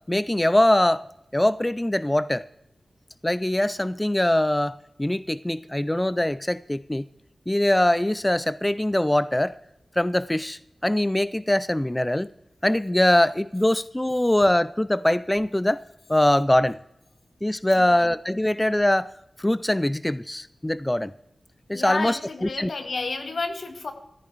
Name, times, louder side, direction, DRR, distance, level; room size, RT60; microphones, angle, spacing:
voice 1, 0.1-1.0 1.3-2.4 3.2-7.0 7.5-9.5 10.0-12.3 12.6-15.8 16.1-16.8 17.4-19.1 19.4-21.1 21.7-22.7, left 1 dB, 15° left, 17 dB, 0.4 m, -22 dB
voice 2, 17.7-18.1 21.7-23.9, left 3 dB, 75° left, 6 dB, 1.7 m, -31 dB
14.5 x 14.0 x 4.6 m, 0.80 s
cardioid pair, 50°, 0 cm